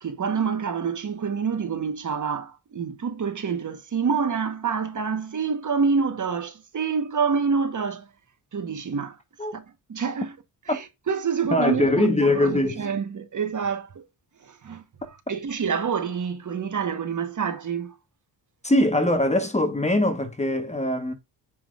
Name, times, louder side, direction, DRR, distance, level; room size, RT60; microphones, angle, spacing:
voice 1, 0.0-8.1 8.5-9.2 9.5-9.6 9.9-10.3 10.7-14.1 14.4-14.8 15.3-18.0, right 6 dB, 45° right, 1.3 m, -27 dB
voice 2, 11.5-12.8 18.6-21.1, left 1 dB, 15° left, 1.2 m, -22 dB
7.1 x 5.7 x 2.5 m
cardioid pair, 80°, 41 cm